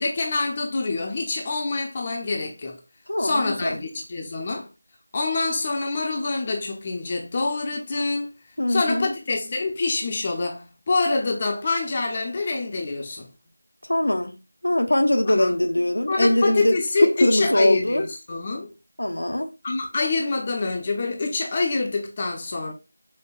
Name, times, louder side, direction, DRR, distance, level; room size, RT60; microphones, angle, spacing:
voice 1, 0.0-2.8 3.2-4.7 5.1-8.3 8.7-13.3 15.3-15.5 16.1-18.7 19.6-22.7, left 3 dB, 25° left, 0.5 m, -26 dB
voice 2, 3.1-3.8 8.6-9.1 13.9-14.3 14.6-16.8 17.2-18.0 19.0-19.5, left 1 dB, 80° left, 0.6 m, -22 dB
5.1 x 2.1 x 2.3 m
figure-of-eight pair, 170°, 0 cm